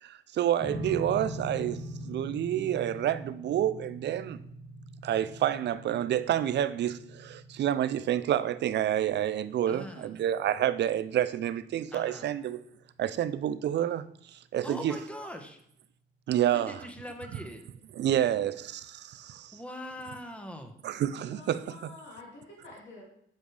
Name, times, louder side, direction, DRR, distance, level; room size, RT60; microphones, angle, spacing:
voice 1, 0.0-4.4 5.0-12.6 13.0-14.0 14.3-14.9 16.3-16.8 18.0-19.6 20.8-21.9, right 11 dB, 60° right, 15 dB, 0.5 m, -29 dB
sound 1, 0.6-13.1, equal, 45° left, 2.2 m, -43 dB
voice 2, 9.7-10.1 11.9-12.3 14.6-15.6 16.5-17.7 19.5-20.7, left 1 dB, 5° left, 4 dB, 1.3 m, -42 dB
voice 3, 21.1-23.0, left 2 dB, 65° left, -3 dB, 2.8 m, -48 dB
7.7 x 7.3 x 3.3 m, 0.73 s
cardioid pair, 90°, 20 cm